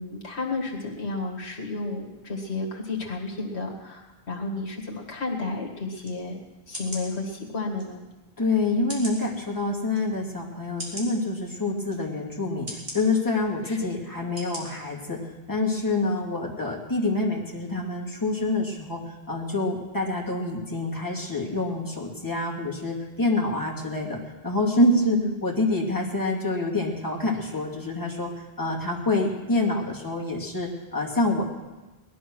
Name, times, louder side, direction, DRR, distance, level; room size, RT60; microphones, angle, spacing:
voice 1, 0.0-6.4 6.7-8.0 13.6-13.8 25.0-25.3, left 3 dB, 85° left, -1 dB, 2.3 m, -32 dB
sound 1, 6.0-6.2 6.7-7.1 7.8-7.9 8.9-9.2 9.9-10.0 10.8-11.1 11.9-12.0 12.7-13.0 13.7-13.8 14.4-14.6 15.0-15.1, right 1 dB, 50° right, 3.3 m, -37 dB
voice 2, 8.4-28.3 28.6-31.5, left 2 dB, 20° left, -2 dB, 2.5 m, -26 dB
19.0 x 12.0 x 6.2 m, 1.1 s
omnidirectional pair, 1.1 m